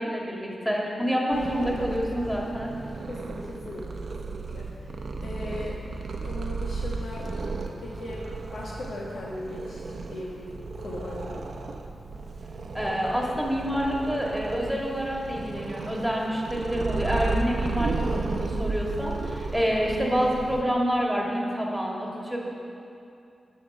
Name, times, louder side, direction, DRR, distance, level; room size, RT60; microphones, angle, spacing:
voice 1, 0.0-2.7 12.7-22.4, equal, ahead, -2 dB, 1.7 m, -27 dB
Purr, 1.3-20.6, right 3 dB, 65° right, 0.7 m, -34 dB
voice 2, 3.1-4.0 4.3-5.8 6.2-7.3 7.6-8.2 8.5-11.5, left 1 dB, 85° left, -5 dB, 1.4 m, -38 dB
10.5 x 5.4 x 6.8 m, 2.6 s
wide cardioid pair, 115°, 0 cm